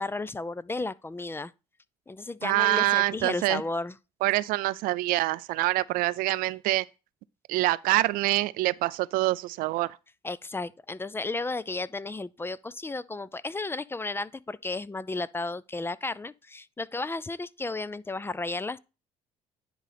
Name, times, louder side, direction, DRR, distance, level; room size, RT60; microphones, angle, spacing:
voice 1, 0.0-1.5 2.1-3.9 10.2-18.8, left 3 dB, 15° left, 0.4 m, -33 dB
voice 2, 2.4-3.6 4.2-6.8 7.5-10.0, right 18 dB, 80° right, 0.4 m, -25 dB
10.0 x 3.9 x 5.0 m
supercardioid pair, 85°, 15 cm